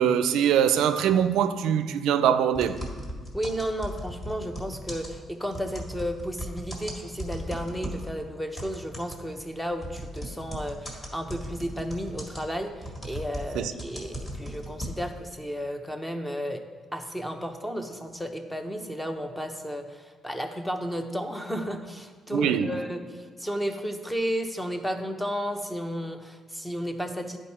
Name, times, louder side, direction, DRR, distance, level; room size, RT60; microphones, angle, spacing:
voice 1, 0.0-2.8 13.5-13.7 22.3-22.7, right 9 dB, 85° right, 0.4 m, -23 dB
sound 1, 2.5-8.1 8.6-15.3, equal, 30° left, 1.9 m, -37 dB
voice 2, 3.3-16.6 16.9-27.4, equal, 5° left, 0.8 m, -33 dB
10.5 x 4.5 x 4.3 m
cardioid pair, 90°, 0 cm